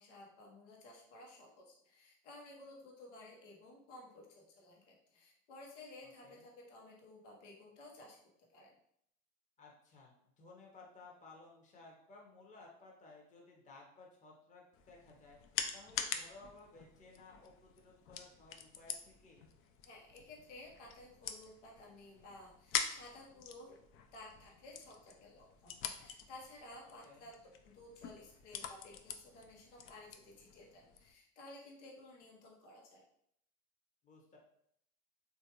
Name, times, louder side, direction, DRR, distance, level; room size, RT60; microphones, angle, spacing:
voice 1, 0.0-8.2 8.5-8.8 19.8-23.8 24.1-33.0, left 2 dB, 80° left, -1 dB, 1.0 m, -55 dB
voice 2, 9.6-15.4 15.7-19.4 26.8-27.3 34.0-34.4, left 3 dB, 20° left, -2 dB, 0.8 m, -58 dB
sound 1, 14.7-31.1, left 7 dB, 40° left, 0.4 m, -45 dB
3.3 x 2.5 x 2.8 m, 0.70 s
hypercardioid pair, 85°, 35 cm